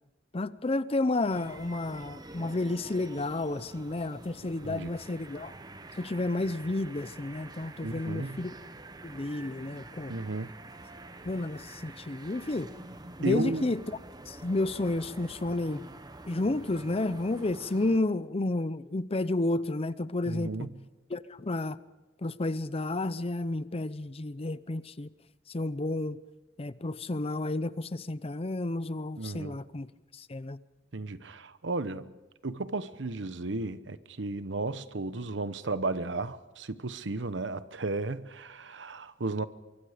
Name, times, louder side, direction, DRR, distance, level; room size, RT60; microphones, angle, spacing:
voice 1, 0.3-5.5 6.0-8.5 9.0-10.1 11.2-12.7 13.2-13.8 14.3-15.8 16.3-20.7 21.1-21.8 22.2-25.1 25.5-26.2 26.6-30.6, left 2 dB, 35° left, 0.6 m, -31 dB
sound 1, 1.3-18.0, right 2 dB, 20° right, 1.0 m, -47 dB
voice 2, 7.8-8.5 10.1-10.5 13.2-13.7 20.3-20.7 29.2-29.6 30.9-32.1 32.4-39.5, right 3 dB, 90° right, 1.0 m, -34 dB
24.0 x 24.0 x 5.1 m
head